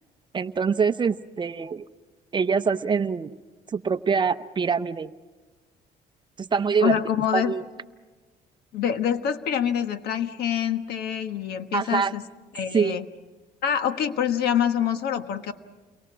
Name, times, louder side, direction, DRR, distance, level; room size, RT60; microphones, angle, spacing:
voice 1, 0.3-1.9 2.3-3.3 3.7-5.1 6.4-7.0 7.3-7.6 11.7-12.1 12.7-13.0, right 5 dB, 25° right, 12 dB, 0.7 m, -24 dB
voice 2, 6.8-7.5 8.7-12.2 12.5-13.0 13.6-15.5, left 9 dB, 70° left, 10 dB, 1.3 m, -26 dB
29.5 x 23.0 x 6.1 m, 1.3 s
cardioid pair, 110°, 17 cm